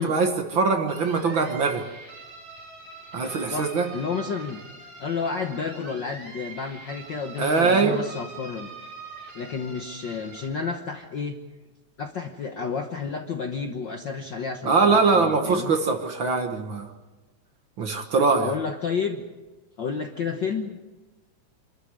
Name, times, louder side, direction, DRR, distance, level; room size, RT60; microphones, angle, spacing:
voice 1, 0.0-1.8 3.1-3.9 7.4-8.0 14.6-16.9 17.8-18.5, right 4 dB, 50° right, 5 dB, 1.8 m, -22 dB
sound 1, 0.9-10.5, right 3 dB, 70° right, 6.9 m, -44 dB
voice 2, 3.5-8.7 9.3-11.4 12.0-15.7 18.4-19.2 19.8-20.8, left 5 dB, 55° left, 5 dB, 1.3 m, -31 dB
25.5 x 13.0 x 9.6 m, 1.2 s
omnidirectional pair, 3.3 m